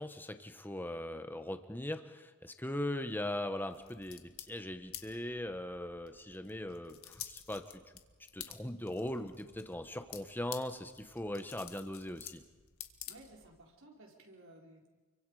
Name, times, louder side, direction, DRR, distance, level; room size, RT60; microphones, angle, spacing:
voice 1, 0.0-7.7 8.3-12.4, left 1 dB, 10° left, 8 dB, 1.3 m, -40 dB
sound 1, 3.7-13.7, left 11 dB, 65° left, 1.8 m, -51 dB
voice 2, 13.1-14.9, right 1 dB, 65° right, 0 dB, 4.9 m, -56 dB
29.5 x 23.5 x 5.0 m, 1.3 s
head